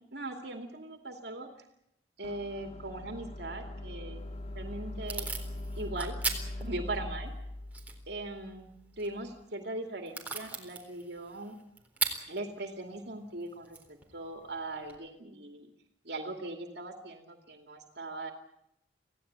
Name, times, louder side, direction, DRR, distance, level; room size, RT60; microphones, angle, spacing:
voice 1, 0.0-1.5 2.2-4.2 4.5-5.3 5.8-6.2 6.6-7.3 8.1-11.6 12.3-15.7 16.0-18.3, right 2 dB, 65° right, 4 dB, 2.5 m, -40 dB
sound 1, 2.2-9.3, left 1 dB, 35° left, 1.9 m, -41 dB
Packing tape duct tape / Tearing, 4.2-15.0, right 4 dB, 10° right, 3.9 m, -41 dB
27.0 x 17.0 x 8.8 m, 0.80 s
head